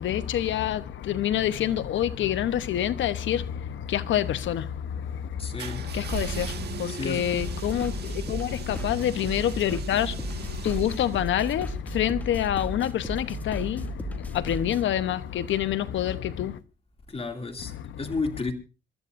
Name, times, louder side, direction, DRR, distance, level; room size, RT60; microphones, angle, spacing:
voice 1, 0.0-16.6 17.6-18.0, left 11 dB, 70° left, 1.0 m, -27 dB
voice 2, 5.4-5.8 6.9-7.2 17.1-18.5, left 3 dB, 30° left, 2.7 m, -32 dB
sound 1, 5.6-11.6, right 7 dB, 55° right, 1.7 m, -38 dB
sound 2, 7.3-14.8, right 1 dB, 10° left, 2.2 m, -36 dB
27.5 x 13.0 x 2.6 m
cardioid pair, 90°, 20 cm